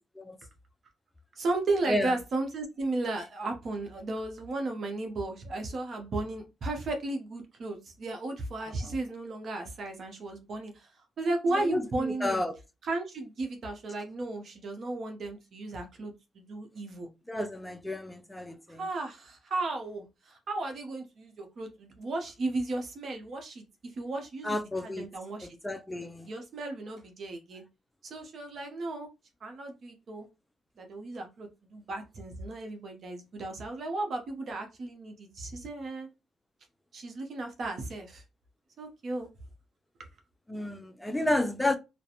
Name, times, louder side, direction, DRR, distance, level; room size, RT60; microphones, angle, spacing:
voice 1, 1.4-10.9 11.2-12.4 12.8-17.1 18.7-23.6 24.0-25.5 26.2-27.6 28.0-29.1 29.4-30.3 30.8-36.1 36.9-38.2 38.8-39.3, right 2 dB, 55° right, 0.7 m, -34 dB
voice 2, 11.5-12.6 17.3-18.8 24.4-25.1 25.4-26.3 40.5-41.8, left 1 dB, 10° left, 0.4 m, -31 dB
2.4 x 2.1 x 2.8 m
cardioid pair, 90°, 0 cm